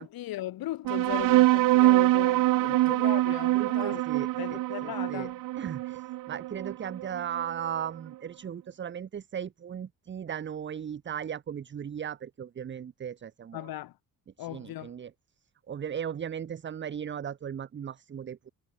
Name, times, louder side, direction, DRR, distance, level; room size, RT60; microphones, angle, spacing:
voice 1, 0.0-5.4 13.5-14.0 14.4-14.9, left 14 dB, 80° left, 2.9 m, -38 dB
sound 1, 0.9-7.8, right 17 dB, 65° right, 0.5 m, -24 dB
voice 2, 3.5-13.7 14.4-15.1 15.7-18.5, right 8 dB, 30° right, 0.9 m, -37 dB
cardioid pair, 145°, 36 cm